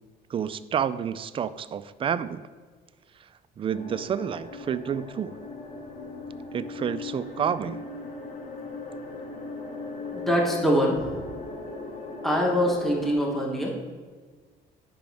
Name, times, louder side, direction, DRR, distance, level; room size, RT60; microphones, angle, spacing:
voice 1, 0.3-2.4 3.6-5.4 6.5-7.8, right 8 dB, 30° right, 14 dB, 0.3 m, -29 dB
sound 1, 3.7-13.1, left 3 dB, 50° left, 1.7 m, -38 dB
voice 2, 10.1-11.2 12.2-13.7, equal, ahead, -2 dB, 1.2 m, -24 dB
10.5 x 5.1 x 3.5 m, 1.5 s
cardioid pair, 110°, 17 cm